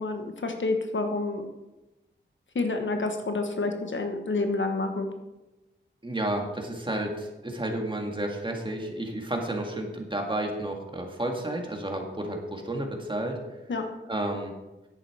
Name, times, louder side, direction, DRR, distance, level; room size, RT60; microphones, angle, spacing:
voice 1, 0.0-1.4 2.5-5.1 13.7-13.9, left 3 dB, 75° left, 5 dB, 1.3 m, -28 dB
voice 2, 6.0-13.4 14.1-14.5, right 1 dB, 25° right, 2 dB, 2.0 m, -31 dB
10.5 x 8.4 x 4.9 m, 1.0 s
wide cardioid pair, 80°, 20 cm